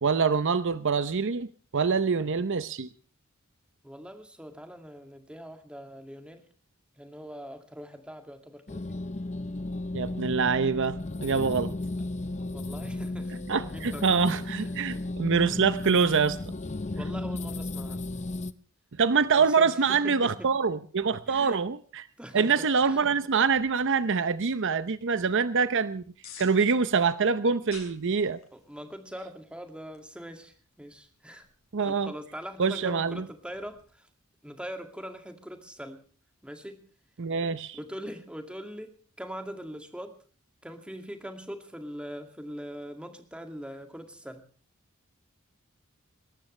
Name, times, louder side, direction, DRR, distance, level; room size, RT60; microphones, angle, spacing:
voice 1, 0.0-1.5 1.7-2.9 9.9-11.7 13.5-16.4 19.0-22.1 22.3-26.0 26.4-28.4 31.7-32.1 32.6-33.2 37.2-37.8, right 5 dB, 60° right, 14 dB, 0.7 m, -25 dB
voice 2, 3.8-6.5 7.0-9.0 12.5-13.4 13.7-14.1 14.5-14.7 17.0-18.1 19.4-20.5 21.3-21.6 22.2-23.2 28.5-31.5 31.8-34.1 34.4-36.0 36.4-36.8 37.7-38.9 39.2-40.2 40.6-44.4, equal, 5° right, 5 dB, 2.3 m, -42 dB
sound 1, 8.7-18.5, left 2 dB, 30° left, 0.7 m, -34 dB
sound 2, 23.3-33.9, left 6 dB, 65° left, 6.9 m, -56 dB
21.5 x 18.5 x 3.3 m, 0.40 s
head